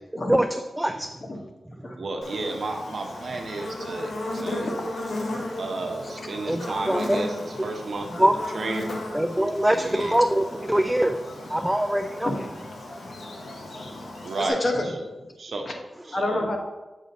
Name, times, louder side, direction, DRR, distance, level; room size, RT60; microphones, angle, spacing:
voice 1, 0.3-1.1 1.8-2.0 5.4-5.5 6.5-7.2 7.6-7.7 8.1-8.3 9.1-11.2 11.5-12.3, right 1 dB, 10° right, 6 dB, 0.3 m, -23 dB
voice 2, 2.0-4.1 4.4-4.7 5.6-7.3 7.6-8.0 8.6-8.9 14.2-14.5 15.4-15.6, right 3 dB, 65° right, 3 dB, 0.8 m, -31 dB
Buzz, 2.2-14.5, left 1 dB, 75° left, 1.1 m, -35 dB
voice 3, 6.5-6.8 12.3-12.4 14.3-15.1 15.6-15.7 16.1-16.6, left 1 dB, 45° left, 2 dB, 1.0 m, -28 dB
7.3 x 2.5 x 5.3 m, 1.1 s
cardioid pair, 60°, 0 cm